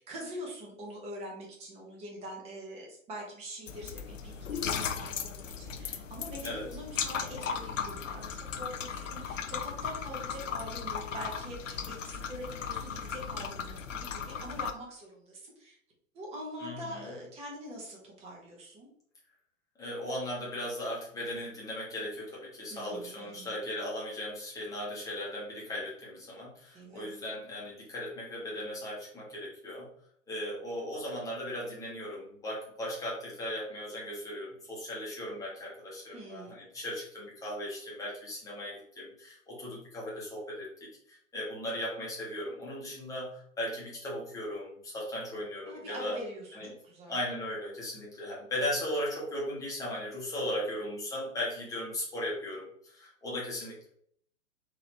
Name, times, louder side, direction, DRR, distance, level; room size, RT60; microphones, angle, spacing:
voice 1, 0.0-15.8 16.1-18.9 22.7-23.5 26.7-27.1 36.1-36.6 45.7-47.2, equal, 15° right, -1 dB, 1.0 m, -44 dB
sound 1, 3.7-14.7, left 7 dB, 70° left, 0.5 m, -37 dB
voice 2, 16.6-17.1 19.8-29.9 30.3-46.2 46.5-46.7 47.1-53.9, left 1 dB, 10° left, -5 dB, 1.2 m, -37 dB
4.0 x 2.9 x 2.9 m, 0.66 s
figure-of-eight pair, 115°, 40 cm